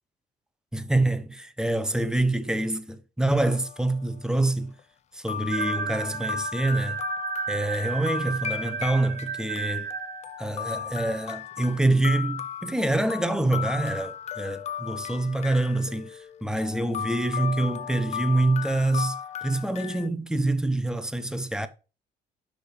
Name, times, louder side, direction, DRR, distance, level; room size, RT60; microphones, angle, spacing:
voice 1, 0.7-4.7 5.1-7.0 7.5-9.9 10.4-21.7, right 2 dB, 5° right, 0.7 m, -26 dB
sound 1, 3.4-3.9 4.8-4.9 5.3-20.1, left 9 dB, 40° left, 0.4 m, -36 dB
sound 2, 5.5-10.4, right 7 dB, 55° right, 1.4 m, -33 dB
6.2 x 5.1 x 4.8 m
cardioid pair, 110°, 17 cm